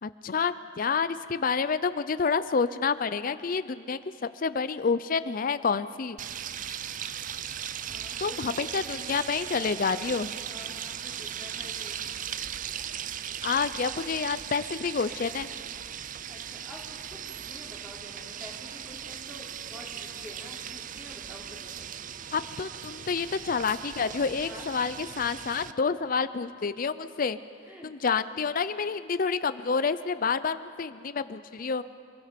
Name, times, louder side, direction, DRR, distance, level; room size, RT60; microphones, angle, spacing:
voice 1, 0.0-6.2 8.2-10.3 13.4-15.5 22.3-27.4 27.8-31.8, left 5 dB, 50° left, 13 dB, 0.5 m, -28 dB
sound 1, 6.2-25.7, right 9 dB, 45° right, 0.5 m, -38 dB
voice 2, 7.9-8.8 10.4-12.1 16.3-22.1 24.4-24.7 26.1-26.3 27.7-27.9, left 1 dB, 10° right, -4 dB, 4.3 m, -48 dB
26.5 x 22.0 x 5.2 m, 2.3 s
head